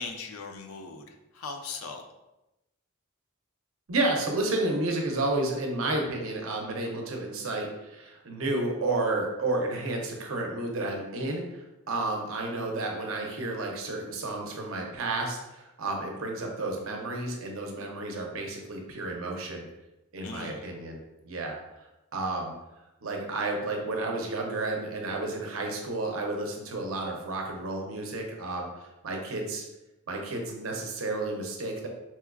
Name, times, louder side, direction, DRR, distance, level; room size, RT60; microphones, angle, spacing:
voice 1, 0.0-2.1 20.2-20.7, left 4 dB, 75° left, 5 dB, 0.4 m, -39 dB
voice 2, 3.9-19.6 20.1-21.0 21.2-21.6 22.1-22.5 23.0-28.7 29.0-29.6 30.1-31.9, right 2 dB, 70° right, 1 dB, 0.6 m, -31 dB
4.2 x 2.3 x 2.2 m, 0.96 s
head